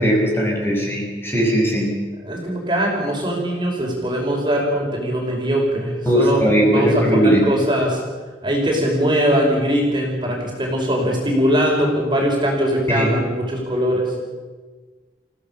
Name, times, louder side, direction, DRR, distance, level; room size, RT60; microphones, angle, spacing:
voice 1, 0.0-2.0 6.1-7.4 12.9-13.1, equal, 15° left, -2 dB, 5.4 m, -18 dB
voice 2, 2.2-6.4 6.7-8.0 8.4-14.1, equal, 25° right, -1 dB, 5.6 m, -21 dB
29.0 x 16.5 x 7.1 m, 1.4 s
head